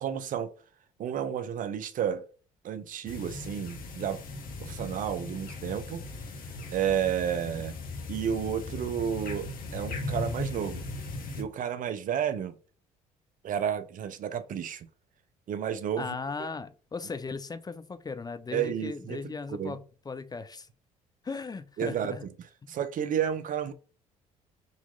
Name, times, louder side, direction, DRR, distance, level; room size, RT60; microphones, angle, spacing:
voice 1, 0.0-0.5 1.0-2.2 2.6-4.2 4.6-6.1 6.7-7.8 8.1-10.8 11.4-12.6 13.4-14.9 15.5-16.1 18.5-19.8 21.8-22.2 22.7-23.7, right 9 dB, 50° right, 0.5 m, -31 dB
sound 1, 3.1-11.4, left 3 dB, 55° left, 0.9 m, -38 dB
voice 2, 16.0-20.7 21.2-22.2 22.6-22.8, left 4 dB, 20° left, 0.5 m, -37 dB
3.9 x 2.9 x 2.4 m
hypercardioid pair, 55°, 18 cm